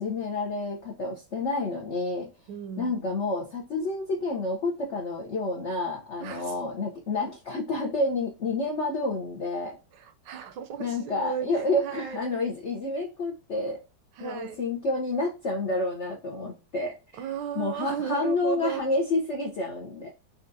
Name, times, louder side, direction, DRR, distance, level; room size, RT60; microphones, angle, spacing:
voice 1, 0.0-2.3 2.8-9.8 10.8-13.8 14.2-17.2 17.5-20.1, left 2 dB, 60° left, 0.7 m, -29 dB
voice 2, 2.5-3.2 6.2-6.6 9.9-12.2 14.2-14.6 17.2-18.9, right 9 dB, 75° right, 1.1 m, -35 dB
5.5 x 2.4 x 2.6 m
omnidirectional pair, 2.1 m